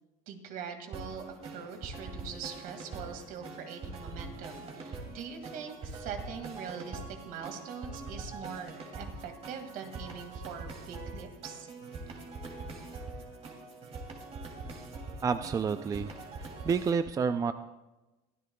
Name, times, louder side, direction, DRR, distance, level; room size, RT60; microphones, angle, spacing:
voice 1, 0.3-1.2 1.5-11.7, right 7 dB, 60° right, 5 dB, 2.1 m, -43 dB
sound 1, 0.9-16.9, right 3 dB, 40° right, 2.8 m, -43 dB
voice 2, 15.2-16.1 16.4-17.5, right 5 dB, 20° right, 11 dB, 0.4 m, -29 dB
22.5 x 13.0 x 2.3 m, 1.1 s
supercardioid pair, 115°, 16 cm